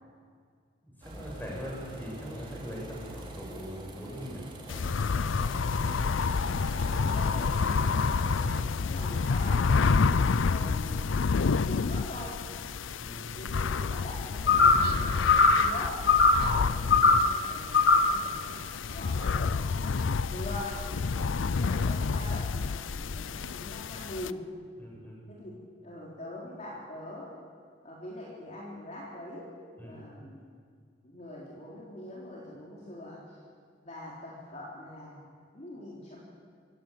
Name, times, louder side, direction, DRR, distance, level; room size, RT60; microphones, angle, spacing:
voice 1, 1.0-5.0 8.4-8.7 13.0-13.3 16.3-16.7 21.1-21.3 24.8-25.2 29.8-30.0, equal, 10° left, -3 dB, 7.6 m, -42 dB
sound 1, 1.0-8.6, right 1 dB, 25° right, 3.8 m, -43 dB
sound 2, 4.7-24.3, left 5 dB, 85° left, 0.5 m, -29 dB
voice 2, 6.4-8.0 8.8-11.3 11.7-12.3 13.3-16.0 16.4-18.5 18.9-20.7 21.6-24.4 25.3-25.6 25.8-27.3 27.8-29.5 29.8-30.4 31.0-33.2 33.8-36.2, left 1 dB, 35° left, -5 dB, 3.9 m, -43 dB
sound 3, 14.5-14.9 15.3-15.7 16.1-16.5 16.9-17.3 17.7-18.2, left 4 dB, 55° left, 1.5 m, -20 dB
24.5 x 16.5 x 8.9 m, 2.1 s
head